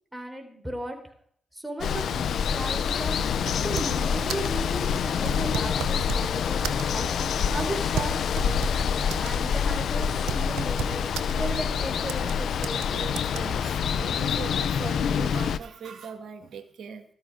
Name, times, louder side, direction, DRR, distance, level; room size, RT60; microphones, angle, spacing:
voice 1, 0.1-1.0 1.5-3.2 3.6-8.6 9.2-11.0 11.4-12.8, right 1 dB, 10° right, 3 dB, 4.2 m, -35 dB
Water, 1.8-15.6, left 7 dB, 75° left, 0.6 m, -26 dB
sound 1, 3.2-4.0 4.3-4.6 5.2-6.3 6.6-7.1 7.6-9.3 9.6-9.7 10.0-11.3 12.1-12.3 12.6-12.9 13.2-13.4, right 10 dB, 85° right, 0.7 m, -34 dB
sound 2, 6.5-12.9, right 4 dB, 50° right, 3.3 m, -47 dB
voice 2, 12.9-17.0, right 7 dB, 70° right, 8 dB, 1.6 m, -40 dB
13.5 x 13.0 x 3.7 m, 0.62 s
supercardioid pair, 45°, 0 cm